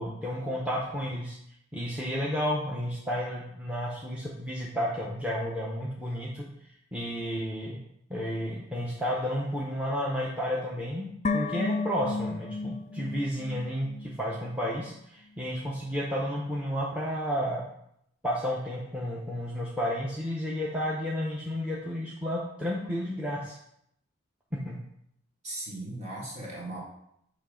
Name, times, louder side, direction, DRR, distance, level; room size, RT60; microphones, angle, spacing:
voice 1, 0.0-1.4 1.7-6.5 6.9-7.8 8.1-17.6 18.2-23.6 24.5-24.8, equal, 5° right, -4 dB, 0.7 m, -32 dB
sound 1, 11.2-14.6 14.8-14.9, left 3 dB, 30° left, 0.3 m, -33 dB
voice 2, 25.4-26.8, right 1 dB, 30° right, -4 dB, 1.6 m, -37 dB
7.1 x 3.1 x 5.0 m, 0.76 s
head